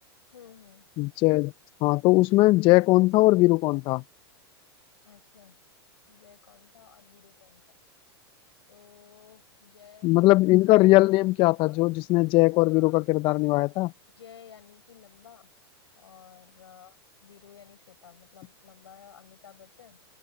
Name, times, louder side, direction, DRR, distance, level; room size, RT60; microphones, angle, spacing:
voice 1, 0.3-0.9 5.1-5.6 6.1-7.6 8.7-10.4 10.8-11.0 11.4-11.8 12.7-12.9 14.2-15.5 15.9-20.0, left 8 dB, 85° left, 7.2 m, -53 dB
voice 2, 1.0-1.5 1.8-4.0 10.0-13.9, left 21 dB, 40° left, 0.5 m, -20 dB
open air
hypercardioid pair, 110°, 13 cm